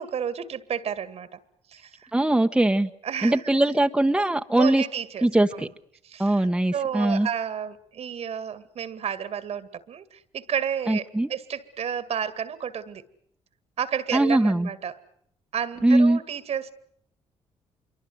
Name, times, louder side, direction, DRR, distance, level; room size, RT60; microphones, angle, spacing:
voice 1, 0.0-1.4 1.7-2.1 3.0-3.4 4.6-5.7 6.0-13.0 13.8-15.0 15.5-16.7, right 8 dB, 65° right, 14 dB, 2.1 m, -31 dB
voice 2, 2.1-2.9 3.2-4.8 5.2-5.7 6.2-7.3 10.9-11.3 14.1-14.7 15.8-16.2, right 1 dB, 10° right, 6 dB, 1.2 m, -21 dB
26.0 x 23.5 x 7.9 m, 0.68 s
cardioid pair, 75°, 12 cm